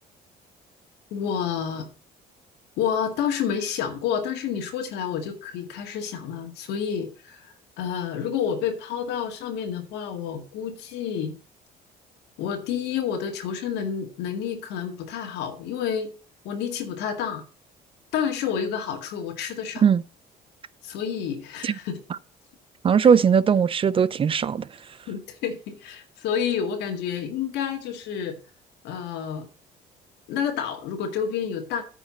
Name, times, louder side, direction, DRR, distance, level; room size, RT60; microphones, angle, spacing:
voice 1, 1.1-1.9 2.8-11.3 12.4-16.1 16.4-17.4 18.1-19.8 20.8-22.0 25.1-28.4 28.8-29.5 30.3-31.8, left 8 dB, 85° left, 2.0 m, -29 dB
voice 2, 22.8-24.7, right 7 dB, 30° right, 0.5 m, -19 dB
9.3 x 5.0 x 7.5 m
cardioid pair, 110°, 17 cm